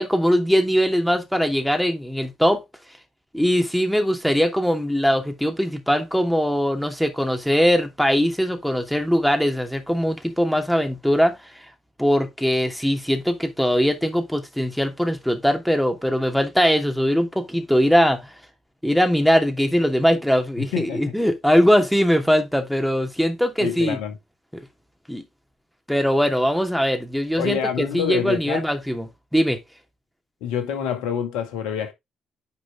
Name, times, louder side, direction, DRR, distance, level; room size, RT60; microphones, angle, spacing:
voice 1, 0.0-2.6 3.3-11.4 12.0-18.3 18.8-24.0 24.5-24.6 25.1-25.2 25.9-29.1 29.3-29.6, equal, ahead, 2.7 m, -21 dB
voice 2, 20.6-21.0 23.6-24.2 27.4-28.7 30.4-31.9, left 8 dB, 80° left, 2.0 m, -26 dB
9.9 x 5.0 x 3.6 m
hypercardioid pair, 45°, 0 cm